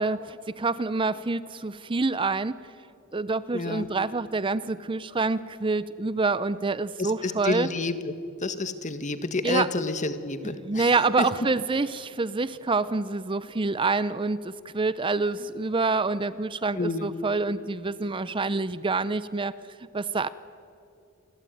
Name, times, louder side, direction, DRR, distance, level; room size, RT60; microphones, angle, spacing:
voice 1, 0.0-2.5 3.1-7.7 9.4-9.7 10.4-19.5 19.9-20.3, right 3 dB, 25° right, 16 dB, 0.6 m, -27 dB
voice 2, 3.5-3.9 7.0-8.0 8.4-10.9 11.2-11.3 16.7-17.1, left 3 dB, 35° left, 11 dB, 1.6 m, -29 dB
28.5 x 22.0 x 9.3 m, 2.7 s
head